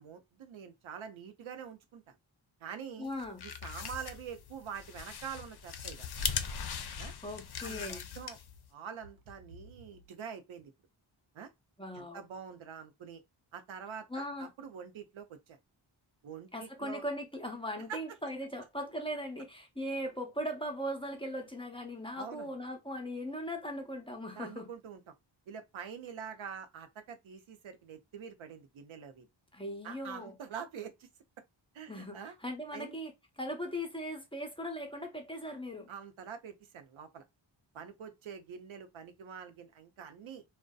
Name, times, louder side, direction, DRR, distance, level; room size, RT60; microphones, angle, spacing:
voice 1, 0.0-2.2 2.6-3.1 3.4-6.3 7.0-7.1 7.6-8.4 8.7-10.7 11.3-11.5 11.9-13.2 13.5-15.6 16.2-17.0 17.8-18.0 22.2-22.5 24.4-25.1 25.5-29.3 29.8-31.1 31.7-32.3 32.7-33.0 35.9-37.2 37.7-40.4, right 7 dB, 80° right, 0.6 m, -45 dB
voice 2, 3.0-3.4 7.2-8.0 11.8-12.2 14.1-14.5 16.5-24.7 29.5-30.4 31.9-35.9, equal, 10° left, 0.6 m, -39 dB
sound 1, 3.1-8.7, left 7 dB, 55° left, 0.5 m, -39 dB
2.6 x 2.2 x 2.2 m
wide cardioid pair, 90°, 47 cm